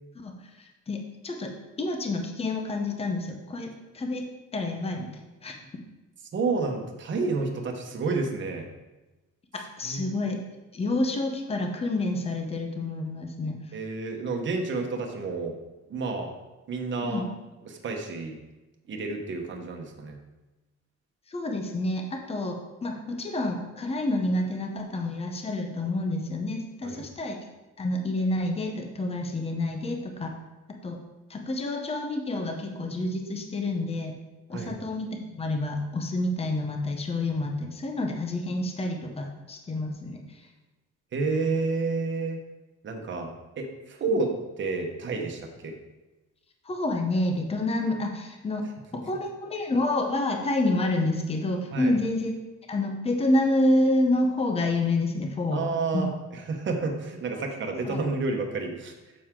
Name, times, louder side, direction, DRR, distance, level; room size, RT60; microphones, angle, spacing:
voice 1, 0.9-1.5 1.8-4.2 4.5-5.1 5.4-5.5 9.8-10.4 10.7-13.6 17.0-17.2 21.3-27.4 27.8-30.3 30.8-31.0 31.3-34.1 34.5-40.2 44.1-44.2 46.6-48.6 48.9-52.3 52.7-55.6 55.9-56.1 57.8-58.0, left 2 dB, 20° left, 3 dB, 0.9 m, -28 dB
voice 2, 6.3-8.7 9.8-10.1 13.7-15.6 15.9-16.3 16.7-17.2 17.6-18.4 18.9-20.2 26.8-27.0 34.5-34.7 41.1-42.4 42.8-45.7 51.7-51.9 55.5-58.9, right 3 dB, 40° right, 3 dB, 1.3 m, -30 dB
9.3 x 7.5 x 3.8 m, 1.1 s
cardioid pair, 160°, 29 cm